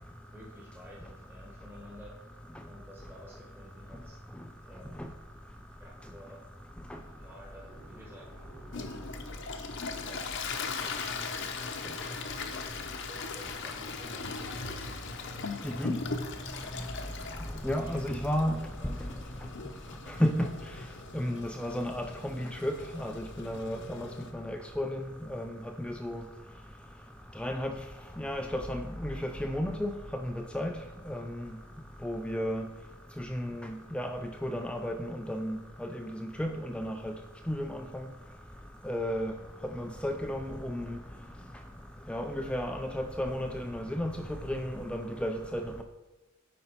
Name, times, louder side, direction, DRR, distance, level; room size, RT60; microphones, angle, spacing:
voice 1, 0.3-2.1 2.6-4.2 4.7-5.0 5.8-6.4 7.2-8.3 8.7-8.9 9.5-9.7 10.1-10.2 10.8-10.9 11.6-11.7 12.0-12.8 13.1-14.9 17.6-19.3, equal, 10° right, -4 dB, 1.2 m, -52 dB
sound 1, 7.0-18.7, right 1 dB, 40° right, 2.1 m, -55 dB
Toilet flush, 8.7-24.3, left 4 dB, 55° left, 0.8 m, -39 dB
voice 2, 15.6-15.9 17.6-18.6 20.2-20.5 21.1-24.1 24.3-25.0 25.3-25.5 25.8-26.2 27.4-27.7 28.2-29.9 30.2-30.7 31.1-31.2 32.0-32.6 33.2-35.9 36.2-37.1 37.5-37.8 38.9-39.3 39.8-41.0 42.1-44.1 44.5-45.8, equal, 5° left, 4 dB, 0.3 m, -33 dB
9.5 x 5.2 x 4.4 m, 1.1 s
head